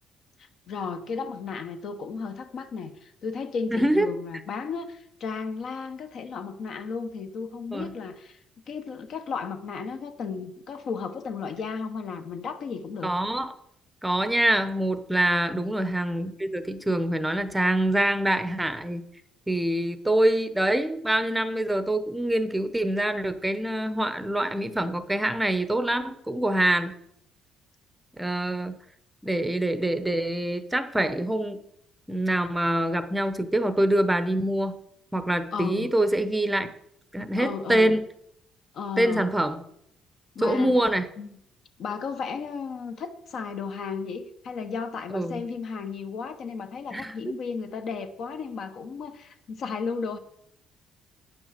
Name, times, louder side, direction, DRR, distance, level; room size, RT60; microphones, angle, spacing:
voice 1, 0.4-8.4 8.7-13.1 15.2-15.7 35.5-35.9 37.4-38.0 38.7-39.3 40.3-40.7 41.2-41.3 41.8-50.2, left 5 dB, 50° left, 8 dB, 1.0 m, -34 dB
voice 2, 3.7-4.1 7.7-7.9 13.0-13.5 14.0-19.0 19.5-26.9 28.2-28.8 29.2-31.6 32.1-34.7 35.1-36.7 37.1-38.0 39.0-39.6 40.4-41.1 45.1-45.4 46.9-47.1, right 1 dB, 5° right, 10 dB, 0.8 m, -25 dB
9.7 x 6.2 x 6.6 m, 0.74 s
cardioid pair, 155°, 0 cm